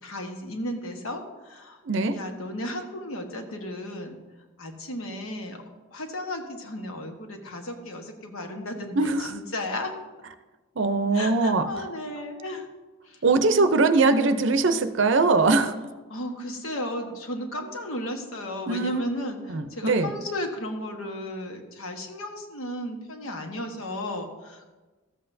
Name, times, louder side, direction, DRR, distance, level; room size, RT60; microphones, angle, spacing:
voice 1, 0.0-1.8 2.1-4.2 4.6-5.6 5.9-9.9 11.1-12.7 13.1-13.2 16.1-24.7, left 1 dB, 75° left, 4 dB, 1.2 m, -34 dB
voice 2, 1.9-2.2 9.0-9.3 10.8-11.6 13.2-15.7 18.7-19.0 19.5-20.1, right 3 dB, 60° right, 9 dB, 0.5 m, -21 dB
13.5 x 7.9 x 2.6 m, 1.2 s
head